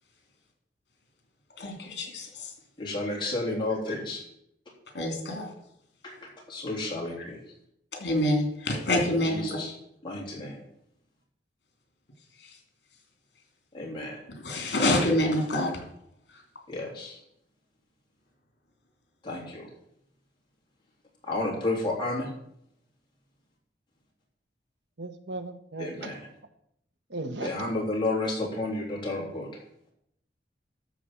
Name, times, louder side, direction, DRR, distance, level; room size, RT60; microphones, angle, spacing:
voice 1, 1.6-2.5 4.9-5.5 8.0-9.6 14.4-15.8, left 1 dB, 70° left, 2 dB, 3.0 m, -26 dB
voice 2, 2.8-4.2 6.0-6.1 6.5-7.4 9.1-9.7 10.0-10.6 13.7-14.2 16.7-17.1 19.2-19.7 21.2-22.3 25.8-26.2 27.4-29.5, left 2 dB, 25° left, -3 dB, 3.4 m, -31 dB
voice 3, 25.0-26.1 27.1-27.7, right 2 dB, 85° right, 8 dB, 1.1 m, -37 dB
13.0 x 4.3 x 7.5 m, 0.74 s
head